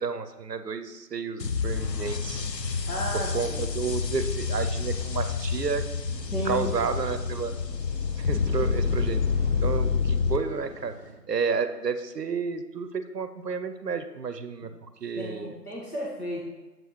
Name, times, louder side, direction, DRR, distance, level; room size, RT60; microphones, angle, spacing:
voice 1, 0.0-2.5 3.3-5.8 6.4-7.5 8.2-9.2 9.6-10.9 11.3-15.5, right 5 dB, 80° right, 10 dB, 0.6 m, -31 dB
sound 1, 1.4-10.4, left 5 dB, 85° left, 0.7 m, -28 dB
voice 2, 2.9-3.7 6.3-6.8 15.2-16.4, equal, 65° left, -4 dB, 1.6 m, -33 dB
sound 2, 6.1-11.1, equal, 35° left, 1.1 m, -43 dB
7.4 x 5.3 x 3.1 m, 1.2 s
figure-of-eight pair, 155°, 49 cm